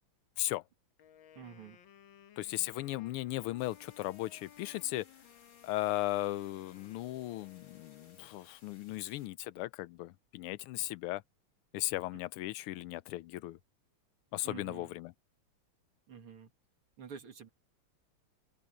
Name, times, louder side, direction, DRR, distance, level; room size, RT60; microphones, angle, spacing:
Wind instrument woodwind instrument, 1.0-8.6, left 10 dB, 70° left, 1.8 m, -59 dB
voice 1, 1.4-1.8 14.4-14.9 16.1-16.5 17.0-17.5, right 7 dB, 80° right, 3.2 m, -48 dB
voice 2, 2.4-5.0 5.6-11.2 11.7-13.6 14.3-15.1, left 16 dB, 90° left, 1.6 m, -37 dB
sound 1, 3.6-9.3, left 4 dB, 45° left, 3.1 m, -64 dB
open air
omnidirectional pair, 2.4 m